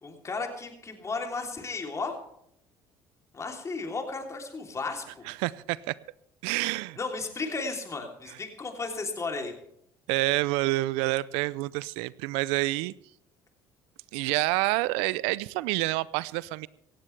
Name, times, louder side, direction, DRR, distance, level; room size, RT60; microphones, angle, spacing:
voice 1, 0.0-2.1 3.3-5.2 7.0-9.5, left 3 dB, 30° left, 3 dB, 3.2 m, -34 dB
voice 2, 5.3-6.0 6.4-7.0 10.1-12.9 14.1-16.7, right 20 dB, 80° right, 21 dB, 0.5 m, -28 dB
17.5 x 15.0 x 3.3 m, 0.74 s
supercardioid pair, 75°, 10 cm